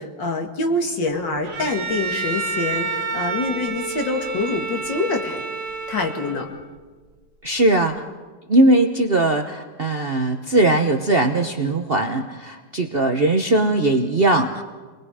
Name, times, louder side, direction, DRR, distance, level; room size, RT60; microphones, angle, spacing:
voice 1, 0.0-5.4 5.9-6.5, left 3 dB, 70° left, 3 dB, 3.0 m, -25 dB
Bowed string instrument, 1.4-6.7, right 4 dB, 70° right, 2.4 m, -29 dB
voice 2, 7.4-8.0 8.5-14.6, right 2 dB, 40° right, 4 dB, 0.9 m, -19 dB
29.5 x 21.5 x 4.9 m, 1.4 s
omnidirectional pair, 2.1 m